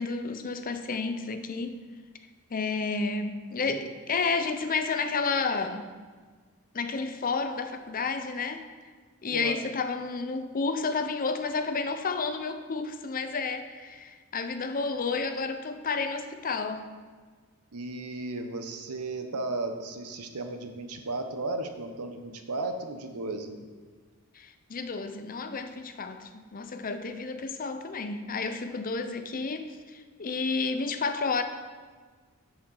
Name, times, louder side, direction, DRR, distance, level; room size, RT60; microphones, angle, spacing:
voice 1, 0.0-1.8 2.5-5.9 6.7-8.6 9.2-16.8 24.3-31.4, left 4 dB, 40° left, 8 dB, 0.6 m, -31 dB
voice 2, 17.7-23.6, right 2 dB, 80° right, 6 dB, 1.0 m, -35 dB
7.4 x 7.4 x 5.5 m, 1.5 s
head